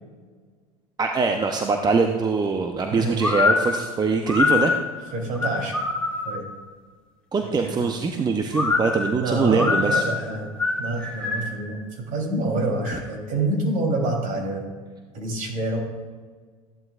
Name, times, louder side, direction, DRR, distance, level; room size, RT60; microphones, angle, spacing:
voice 1, 1.0-4.7 7.3-10.0, right 4 dB, 20° right, 4 dB, 0.8 m, -23 dB
sound 1, 3.2-6.5 8.5-11.6, left 4 dB, 5° left, 2.5 m, -24 dB
voice 2, 5.1-5.8 6.2-6.4 7.4-7.8 9.2-10.5 10.8-14.6 15.1-15.8, right 2 dB, 50° right, 0 dB, 3.6 m, -27 dB
15.0 x 11.0 x 2.5 m, 1.5 s
hypercardioid pair, 85°, 18 cm